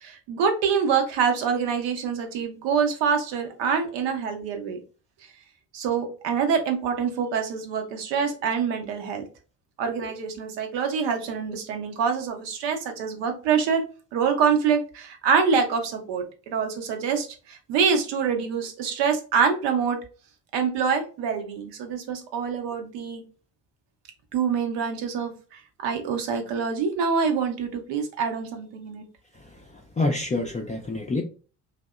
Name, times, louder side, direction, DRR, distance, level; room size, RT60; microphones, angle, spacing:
voice 1, 0.0-4.8 5.7-9.2 9.8-13.8 14.1-20.0 20.5-23.2 24.3-29.0, right 6 dB, 70° right, 5 dB, 0.7 m, -25 dB
voice 2, 29.4-31.2, left 2 dB, 15° left, 0 dB, 0.4 m, -28 dB
2.7 x 2.1 x 2.2 m, 0.36 s
hypercardioid pair, 50°, 44 cm